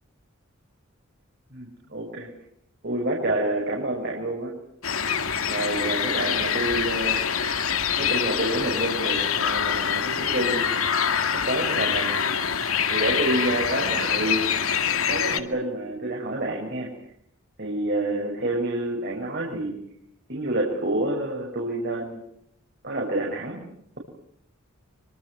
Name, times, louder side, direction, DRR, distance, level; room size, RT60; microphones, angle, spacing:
voice 1, 1.5-2.3 2.8-4.5 5.4-7.2 8.0-10.7 11.3-12.1 12.9-14.4 14.9-16.9 17.6-19.7 20.3-22.2 22.8-23.6, right 1 dB, 50° right, -1 dB, 6.2 m, -28 dB
sound 1, 4.8-15.4, left 7 dB, 85° left, 2.1 m, -25 dB
25.5 x 24.5 x 8.0 m, 0.73 s
head